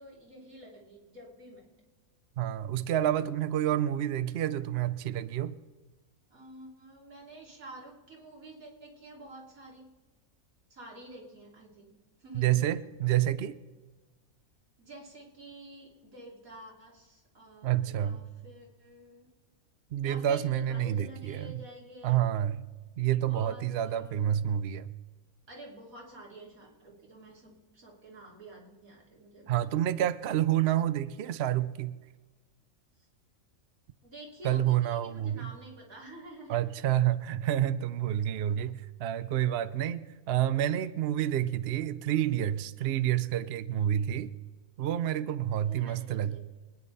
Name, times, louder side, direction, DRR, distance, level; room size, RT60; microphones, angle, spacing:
voice 1, 0.0-1.8 6.3-9.9 10.7-12.6 14.8-19.3 20.0-22.2 23.3-24.4 25.5-29.6 34.0-36.7 45.6-46.4, right 1 dB, 80° right, -2 dB, 3.4 m, -49 dB
voice 2, 2.4-5.6 12.3-13.6 17.6-18.2 19.9-21.6 22.0-22.6 23.0-24.9 29.5-32.0 34.4-35.5 36.5-44.3 44.8-46.4, right 11 dB, 60° right, 14 dB, 0.7 m, -29 dB
25.0 x 9.7 x 4.0 m, 1.3 s
omnidirectional pair, 1.4 m